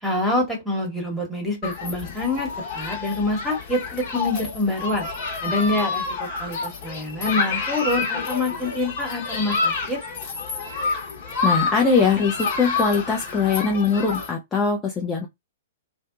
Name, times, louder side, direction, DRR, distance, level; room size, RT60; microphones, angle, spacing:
voice 1, 0.0-2.5 2.7-5.1 5.4-10.0, left 2 dB, 5° right, 1.1 m, -26 dB
Human group actions, 1.6-14.3, left 4 dB, 45° left, 1.0 m, -28 dB
voice 2, 11.4-15.3, left 5 dB, 15° left, 0.5 m, -21 dB
2.6 x 2.1 x 2.4 m
figure-of-eight pair, 110°, 0 cm